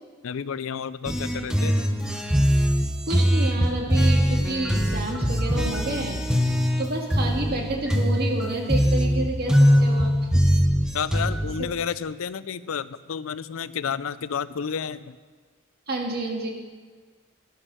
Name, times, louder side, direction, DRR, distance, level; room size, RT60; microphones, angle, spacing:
voice 1, 0.2-2.0 10.9-15.2, left 7 dB, 75° left, 15 dB, 0.5 m, -31 dB
sound 1, 1.0-11.5, equal, 5° right, 0.9 m, -22 dB
voice 2, 3.1-6.2 6.8-10.5 11.1-11.3 11.6-11.7 15.9-16.5, right 2 dB, 50° right, 1 dB, 1.8 m, -29 dB
11.0 x 11.0 x 6.2 m, 1.5 s
head